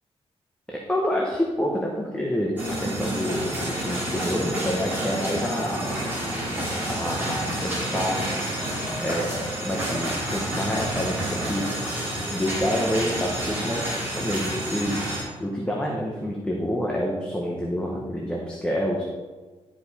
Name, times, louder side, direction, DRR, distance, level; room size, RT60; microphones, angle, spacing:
voice 1, 0.7-5.8 6.9-8.2 9.0-9.2 9.6-11.7 12.3-13.8 14.1-19.0, equal, 10° left, -2 dB, 1.0 m, -28 dB
sound 1, 2.6-15.2, right 1 dB, 15° right, 2.6 m, -29 dB
sound 2, 7.4-9.5, equal, 35° left, 2.8 m, -44 dB
11.5 x 5.1 x 4.1 m, 1.3 s
wide cardioid pair, 155°, 11 cm